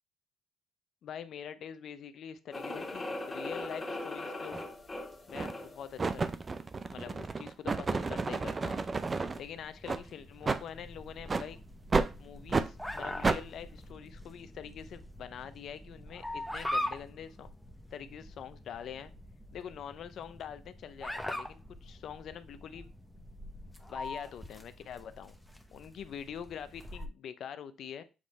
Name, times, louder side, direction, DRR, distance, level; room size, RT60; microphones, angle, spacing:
voice 1, 1.0-4.6 5.3-6.3 6.9-8.8 9.4-11.6 12.2-17.5 17.9-19.1 19.5-22.9 23.9-25.3 25.7-28.0, left 8 dB, 65° left, 12 dB, 0.6 m, -44 dB
sound 1, 2.5-5.8, left 2 dB, 20° left, 1.8 m, -39 dB
sound 2, 4.5-4.7 5.3-5.6 6.0-9.4 9.8-10.0 10.4-10.6 11.3-11.5 11.9-12.1 12.5-12.7 13.2-13.4, right 4 dB, 30° right, 0.5 m, -31 dB
sound 3, 8.7-27.1, left 1 dB, 5° left, 0.9 m, -43 dB
7.4 x 3.1 x 4.1 m, 0.30 s
supercardioid pair, 75°, 0 cm